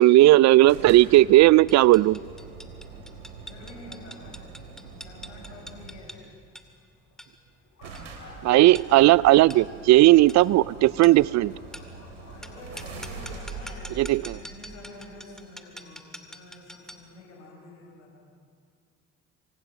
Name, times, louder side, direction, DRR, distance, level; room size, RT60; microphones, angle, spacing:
voice 1, 0.0-2.2 8.4-11.5 14.0-14.3, right 16 dB, 50° right, 22 dB, 0.5 m, -16 dB
sound 1, 0.7-6.2 7.2-7.3 7.5-7.6 7.8-15.3, right 4 dB, 90° right, 3.0 m, -43 dB
sound 2, 1.7-17.1, equal, ahead, 2.4 m, -46 dB
voice 2, 3.5-4.5 5.0-6.3 12.3-18.2, left 2 dB, 85° left, -1 dB, 6.7 m, -47 dB
sound 3, 5.7-6.0 6.8-6.9 7.1-7.2 7.6-13.9, left 3 dB, 45° left, 5.4 m, -51 dB
28.0 x 25.0 x 5.9 m, 2.2 s
hypercardioid pair, 60°, 35 cm